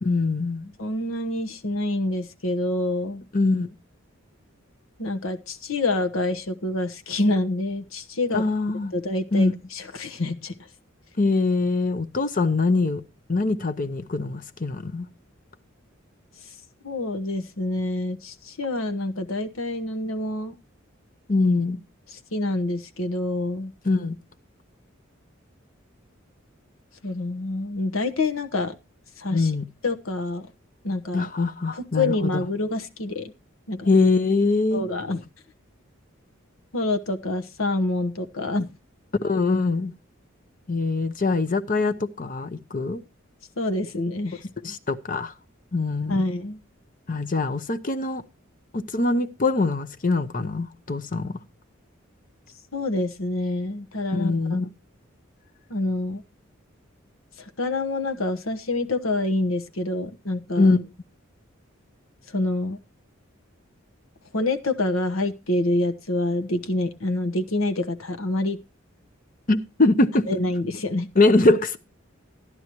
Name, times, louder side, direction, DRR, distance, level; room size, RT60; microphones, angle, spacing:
voice 1, 0.0-0.7 3.3-3.7 8.3-8.9 9.3-9.5 11.2-13.0 13.3-15.1 21.3-21.8 23.8-24.2 29.3-29.7 31.1-32.4 33.8-34.8 39.2-39.9 40.7-43.0 44.6-45.3 45.7-46.2 47.1-48.2 48.7-51.3 54.1-54.7 60.6-60.9 69.5-70.3 71.1-71.8, left 3 dB, 40° left, 0.8 m, -23 dB
voice 2, 0.8-3.2 5.0-8.4 8.9-10.5 16.8-20.5 22.3-23.7 27.0-28.7 29.2-29.5 29.8-30.4 30.8-31.3 32.0-33.3 33.7-33.9 34.7-35.2 36.7-38.7 43.6-44.4 46.1-46.6 52.7-54.6 55.7-56.2 57.6-60.7 62.3-62.8 64.3-68.6 70.3-71.1, left 2 dB, 85° left, 1.1 m, -27 dB
14.0 x 11.0 x 3.0 m
head